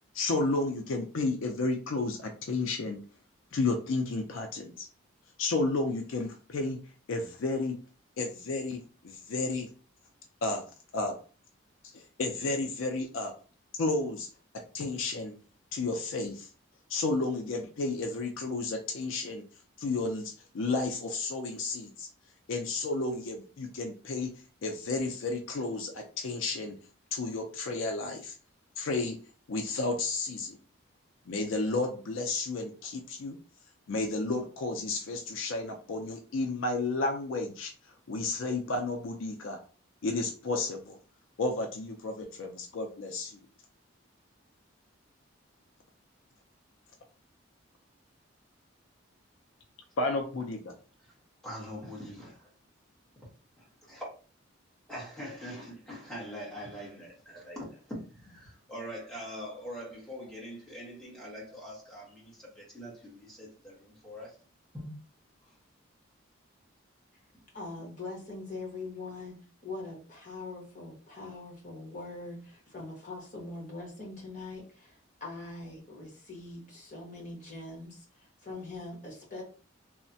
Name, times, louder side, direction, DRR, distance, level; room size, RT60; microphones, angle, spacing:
voice 1, 0.1-3.0 3.5-4.9 5.4-6.8 7.1-7.8 8.2-9.7 10.4-10.6 10.9-11.2 11.9-13.3 13.8-14.3 14.7-15.4 15.7-16.5 16.9-19.4 19.8-22.1 22.5-24.3 24.6-26.8 27.1-28.4 28.8-29.2 29.5-30.6 31.3-33.4 33.9-37.7 38.1-39.6 40.0-41.0 41.4-43.4 50.0-50.8, left 3 dB, 70° left, 0.4 m, -32 dB
voice 2, 51.4-52.5 53.6-54.1 54.9-64.4 64.7-64.9 65.4-65.6, equal, 5° left, 1.2 m, -43 dB
voice 3, 67.5-79.4, left 3 dB, 40° left, 1.2 m, -42 dB
3.2 x 2.1 x 2.6 m
head